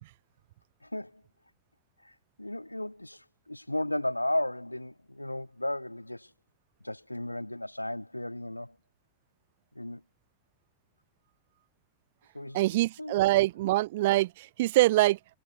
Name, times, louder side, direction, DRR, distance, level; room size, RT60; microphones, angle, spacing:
voice 1, 0.8-1.2 2.0-6.3 6.8-8.7 9.8-10.0 12.3-12.6 13.0-13.2, left 1 dB, 85° left, 1.9 m, -34 dB
voice 2, 12.5-15.2, right 17 dB, 55° right, 0.4 m, -24 dB
figure-of-eight pair, 90°, 0 cm